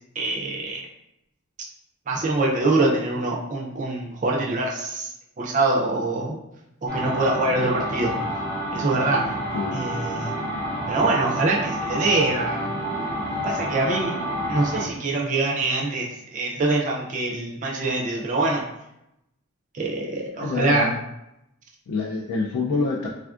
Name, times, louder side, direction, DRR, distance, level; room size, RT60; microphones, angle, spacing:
voice 1, 0.2-0.9 2.1-5.1 5.4-6.4 6.8-8.1 8.7-9.4 9.7-10.3 10.9-12.8 13.4-14.1 14.5-18.6 19.7-20.9, right 2 dB, 35° right, -2 dB, 0.4 m, -24 dB
sound 1, 6.9-14.9, equal, 35° left, 0.8 m, -29 dB
voice 2, 9.5-10.1 20.4-21.0 21.9-23.1, left 3 dB, 85° left, -1 dB, 0.3 m, -27 dB
3.4 x 2.3 x 2.4 m, 0.84 s
head